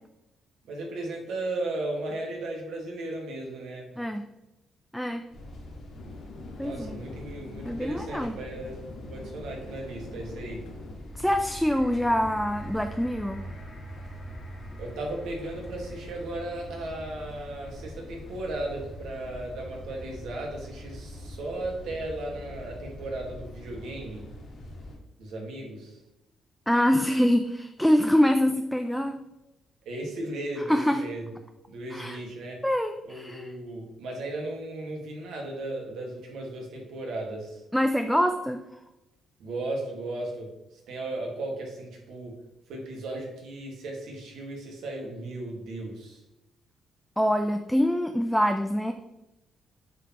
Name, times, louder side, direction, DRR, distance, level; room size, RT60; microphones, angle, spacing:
voice 1, 0.6-4.0 6.6-10.7 14.8-24.2 25.2-26.0 29.8-31.4 31.7-32.6 33.0-37.6 39.4-42.3 42.7-46.2, right 2 dB, 80° right, 0 dB, 1.6 m, -36 dB
voice 2, 4.0-4.3 4.9-5.2 6.6-7.0 7.7-8.4 11.2-13.5 26.7-29.2 30.7-31.0 31.9-32.2 32.6-33.5 37.7-38.6 47.2-48.9, equal, ahead, 6 dB, 0.4 m, -25 dB
sound 1, 5.3-25.0, left 1 dB, 55° left, 1.8 m, -43 dB
sound 2, 5.9-10.9, left 4 dB, 80° left, 0.8 m, -46 dB
sound 3, 10.9-21.1 21.8-21.9, right 2 dB, 35° left, 1.5 m, -48 dB
7.9 x 4.1 x 2.9 m, 0.96 s
cardioid pair, 90°, 0 cm